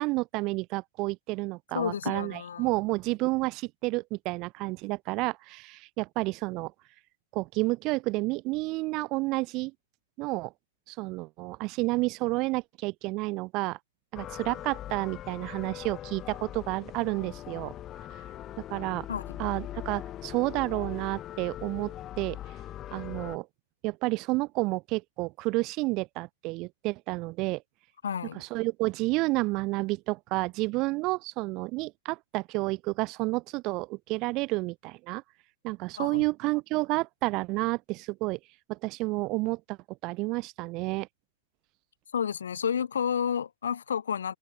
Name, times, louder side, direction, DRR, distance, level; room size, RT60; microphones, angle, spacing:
voice 1, 0.0-6.7 7.3-9.7 10.2-10.5 10.9-13.8 14.1-17.7 18.7-19.1 19.4-22.4 22.9-23.5 23.8-27.6 28.3-35.2 35.6-38.4 38.7-39.8 40.0-41.1, right 22 dB, 40° right, 0.6 m, -30 dB
voice 2, 1.7-2.7 19.1-19.4 28.0-28.4 36.0-36.2 42.1-44.4, left 7 dB, 70° left, 0.4 m, -31 dB
sound 1, 14.1-23.4, left 12 dB, 30° left, 1.8 m, -41 dB
figure-of-eight pair, 100°, 0 cm